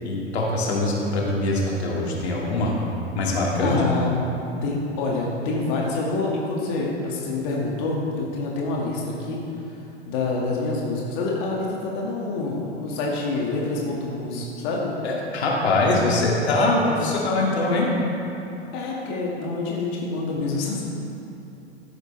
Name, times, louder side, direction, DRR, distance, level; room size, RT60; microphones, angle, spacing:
voice 1, 0.0-2.7 3.1-3.8 15.0-17.9, left 2 dB, 70° left, -3 dB, 2.3 m, -23 dB
voice 2, 3.6-4.1 4.6-9.4 10.1-14.9 18.7-20.8, left 3 dB, 45° left, -3 dB, 2.1 m, -27 dB
13.5 x 10.5 x 3.4 m, 3.0 s
figure-of-eight pair, 100°, 33 cm